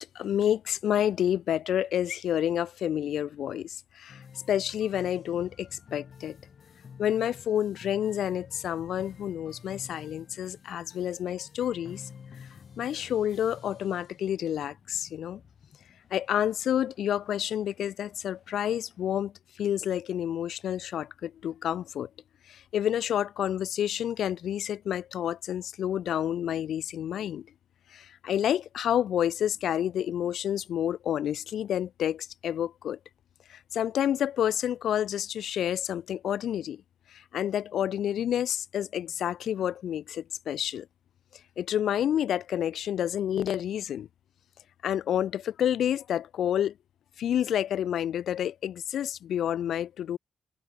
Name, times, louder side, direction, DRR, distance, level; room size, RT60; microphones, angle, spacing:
voice 1, 0.0-4.2 4.5-6.4 7.0-12.0 12.8-15.4 16.1-19.3 19.6-22.1 22.5-27.5 27.9-33.0 33.5-36.8 37.1-40.9 41.6-44.1 44.8-46.7 47.2-50.2, left 10 dB, 70° left, 3.8 m, -29 dB
sound 1, 4.1-19.2, left 6 dB, 50° left, 7.5 m, -52 dB
cardioid pair, 80°, 0 cm